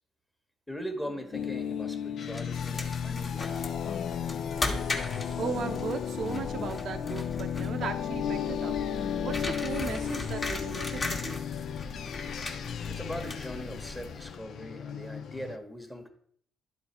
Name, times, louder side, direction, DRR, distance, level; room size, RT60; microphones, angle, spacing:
voice 1, 0.7-4.0 4.6-5.2 12.9-16.1, equal, 5° left, 5 dB, 1.2 m, -41 dB
sound 1, 1.3-15.6, left 8 dB, 65° left, 0.4 m, -34 dB
sound 2, 2.3-14.3, left 2 dB, 35° left, 1.2 m, -38 dB
voice 2, 5.4-8.8 9.2-11.4, right 6 dB, 70° right, 6 dB, 0.6 m, -37 dB
11.0 x 3.9 x 4.3 m, 0.62 s
cardioid pair, 90°, 0 cm